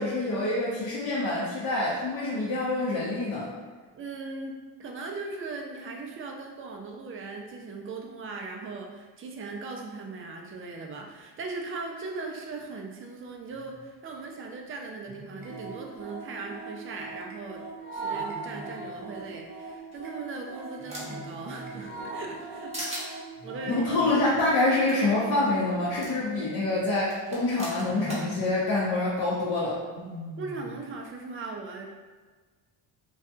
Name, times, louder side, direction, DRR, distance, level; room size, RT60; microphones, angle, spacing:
voice 1, 0.0-3.5 23.7-29.8, left 2 dB, 50° left, -7 dB, 0.7 m, -26 dB
voice 2, 3.9-17.6 17.9-22.9 23.4-23.9 30.4-31.9, right 3 dB, 30° right, 1 dB, 0.4 m, -39 dB
Wild animals, 13.5-13.8 15.0-15.8 18.1-19.0 20.8-21.9 23.3-24.3 25.8-27.0 27.7-28.6 29.9-30.9, left 1 dB, 85° left, 1.1 m, -45 dB
sound 1, 15.4-25.8, right 3 dB, 90° right, 0.8 m, -40 dB
sound 2, 19.9-21.3 21.7-22.5 22.7-23.1 24.6-24.7 24.9-25.0 26.0-26.1 27.1-28.3, right 1 dB, 15° right, 0.9 m, -38 dB
2.7 x 2.3 x 2.3 m, 1.4 s
supercardioid pair, 90°, 45 cm